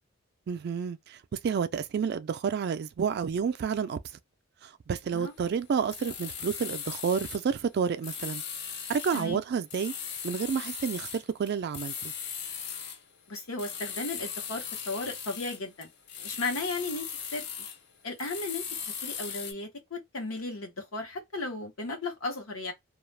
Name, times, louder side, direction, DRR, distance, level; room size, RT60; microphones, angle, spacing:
voice 1, 0.5-4.0 4.6-8.4 8.9-9.9 10.2-12.1, right 6 dB, 50° right, 0.3 m, -30 dB
sound 1, 5.9-7.5 8.0-9.3 9.7-13.0 13.6-17.8 18.2-19.5, left 7 dB, 50° left, 0.5 m, -38 dB
voice 2, 13.3-15.9 16.2-17.4 18.0-18.6 19.0-22.7, left 3 dB, 80° left, 0.9 m, -35 dB
2.3 x 2.1 x 3.2 m
head